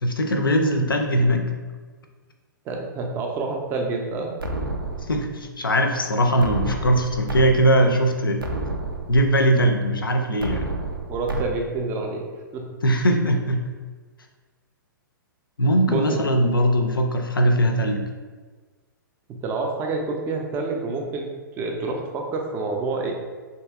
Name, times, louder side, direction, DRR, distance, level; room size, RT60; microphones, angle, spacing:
voice 1, 0.0-1.5 5.1-8.4 9.1-10.7 12.8-13.6 15.6-18.1, equal, 80° left, 4 dB, 0.4 m, -20 dB
voice 2, 2.7-4.4 11.1-12.2 12.5-12.7 15.9-16.2 19.3-21.3 21.6-23.1, right 3 dB, 20° right, 1 dB, 0.4 m, -28 dB
sound 1, 4.4-5.4 6.4-7.4 7.9-8.0 8.4-9.4 10.4-11.4, right 2 dB, 85° right, 0.4 m, -30 dB
2.7 x 2.7 x 2.3 m, 1.4 s
figure-of-eight pair, 115°, 11 cm